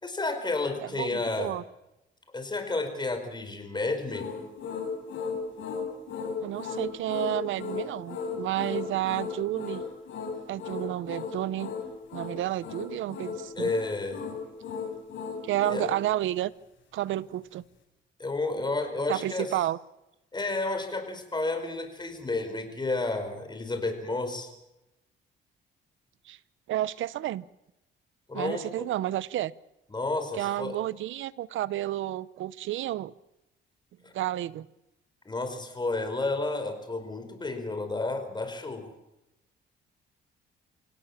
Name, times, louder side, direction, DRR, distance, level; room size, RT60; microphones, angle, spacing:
voice 1, 0.0-1.6 2.3-4.3 13.5-14.2 15.5-15.8 18.2-19.6 20.3-24.5 28.3-28.6 29.9-30.8 34.0-34.1 35.2-38.9, left 2 dB, 20° left, 7 dB, 5.0 m, -31 dB
voice 2, 1.0-1.6 6.4-9.8 10.5-11.7 12.1-13.7 15.4-16.5 16.9-17.6 19.1-19.8 26.3-26.4 26.7-27.4 28.3-29.5 30.4-33.1 34.1-34.7, right 14 dB, 80° right, 19 dB, 0.8 m, -31 dB
sound 1, 4.1-15.9, left 5 dB, 70° left, 7.9 m, -35 dB
26.0 x 17.5 x 7.4 m, 0.92 s
cardioid pair, 90°, 20 cm